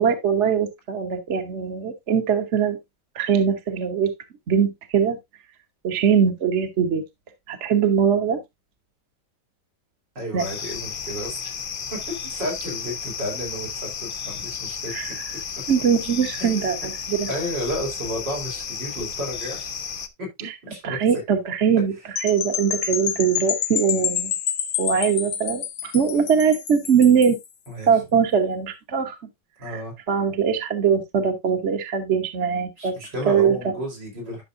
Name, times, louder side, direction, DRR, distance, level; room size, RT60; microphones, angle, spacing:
voice 1, 0.0-2.8 3.1-4.1 4.5-5.2 5.8-7.0 7.5-8.4 10.3-10.4 14.9-15.2 15.7-17.3 20.4-20.5 20.8-24.3 24.8-27.4 27.9-29.2 29.7-29.8 30.1-33.0 33.3-33.6, right 7 dB, 45° right, 1.3 m, -21 dB
voice 2, 10.2-11.5 11.9-14.9 16.4-16.7 17.3-19.7 20.2-21.2 27.7-27.9 29.6-29.9 32.8-34.4, equal, 85° right, 5.2 m, -32 dB
sound 1, 10.4-20.1, left 7 dB, 50° left, 0.6 m, -33 dB
sound 2, 22.2-27.5, left 10 dB, 65° left, 1.2 m, -28 dB
11.5 x 6.5 x 2.5 m
omnidirectional pair, 1.9 m